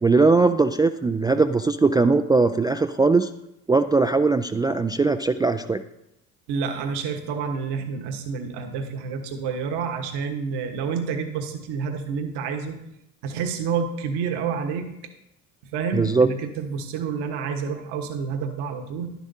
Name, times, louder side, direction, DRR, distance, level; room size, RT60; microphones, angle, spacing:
voice 1, 0.0-3.3 3.7-5.8 15.9-16.3, right 3 dB, 10° right, 7 dB, 0.3 m, -20 dB
voice 2, 6.5-12.8 13.2-14.9 15.6-19.1, right 6 dB, 60° right, 5 dB, 1.4 m, -29 dB
11.5 x 11.0 x 2.7 m, 0.82 s
figure-of-eight pair, 55°, 45 cm